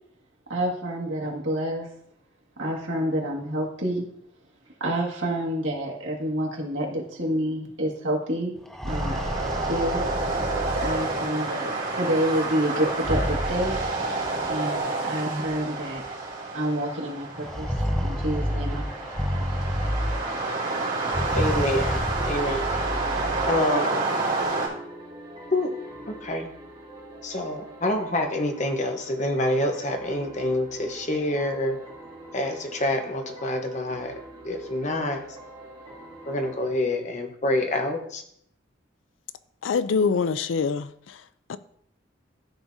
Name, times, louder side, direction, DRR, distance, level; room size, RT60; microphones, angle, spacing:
voice 1, 0.5-1.9 2.6-4.0 4.8-8.5 8.8-9.2 9.7-10.0 10.8-13.8 14.5-16.0 16.5-17.7 18.0-19.6, right 1 dB, 85° right, 1.9 m, -28 dB
sound 1, 8.6-11.5 12.8-14.5 15.5-15.6 16.0-16.1 17.4-20.5 21.0-23.6, equal, ahead, 0.5 m, -30 dB
sound 2, 8.8-24.7, right 3 dB, 55° right, 3.3 m, -29 dB
sound 3, 17.7-36.7, right 1 dB, 30° right, 3.1 m, -44 dB
voice 2, 21.3-22.0 22.3-22.7 23.5-24.2 25.5-25.7 26.1-26.5 27.2-31.8 32.3-34.2 34.4-35.2 36.3-38.2, left 1 dB, 40° left, 1.0 m, -27 dB
voice 3, 39.6-41.2 41.5-41.6, left 5 dB, 85° left, 0.4 m, -25 dB
13.0 x 4.7 x 2.7 m
head